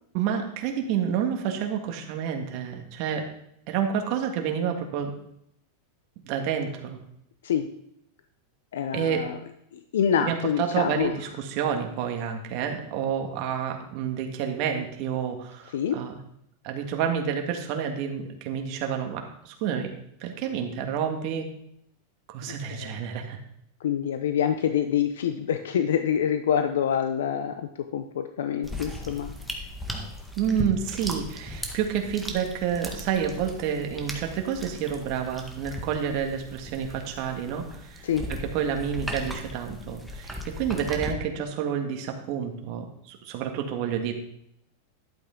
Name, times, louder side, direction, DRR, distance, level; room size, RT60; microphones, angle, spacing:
voice 1, 0.1-3.3 3.7-5.1 6.3-7.0 8.9-9.3 10.2-16.2 16.6-19.9 20.2-21.5 22.3-23.4 30.4-44.1, right 8 dB, 50° right, 4 dB, 1.8 m, -29 dB
voice 2, 8.7-9.4 9.9-11.1 15.7-16.0 22.7-23.0 23.8-29.3 38.0-38.3, left 8 dB, 85° left, 8 dB, 0.7 m, -26 dB
sound 1, 28.6-41.1, left 1 dB, ahead, 1.6 m, -38 dB
11.5 x 8.3 x 3.8 m, 0.74 s
supercardioid pair, 130°, 0 cm